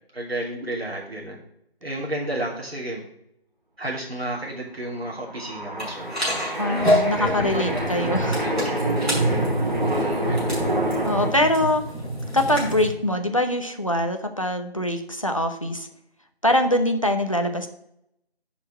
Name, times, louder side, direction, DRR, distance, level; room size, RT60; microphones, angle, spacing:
voice 1, 0.1-1.4 1.8-3.0 3.8-6.3 6.6-8.1 8.4-8.6 9.8-10.6, right 1 dB, 75° right, -3 dB, 2.9 m, -32 dB
sound 1, 4.9-11.3, right 1 dB, 45° right, 2.3 m, -28 dB
sound 2, 5.8-12.9, equal, ahead, 3.9 m, -27 dB
voice 2, 6.5-8.4 11.0-11.8 12.3-15.9 16.4-17.7, left 1 dB, 30° left, 5 dB, 0.7 m, -23 dB
7.2 x 5.9 x 6.3 m, 0.78 s
figure-of-eight pair, 175°, 31 cm